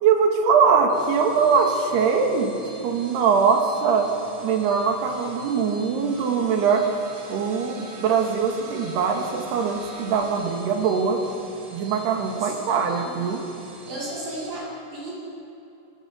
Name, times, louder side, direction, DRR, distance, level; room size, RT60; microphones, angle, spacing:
voice 1, 0.0-4.1 4.4-6.8 7.3-11.2 11.7-13.4, right 6 dB, 60° right, 2 dB, 3.8 m, -22 dB
sound 1, 0.8-14.5, right 3 dB, 80° right, 6.6 m, -44 dB
voice 2, 12.4-13.2 13.9-15.2, right 1 dB, 40° right, -5 dB, 8.7 m, -35 dB
28.0 x 21.0 x 5.4 m, 2.9 s
omnidirectional pair, 5.7 m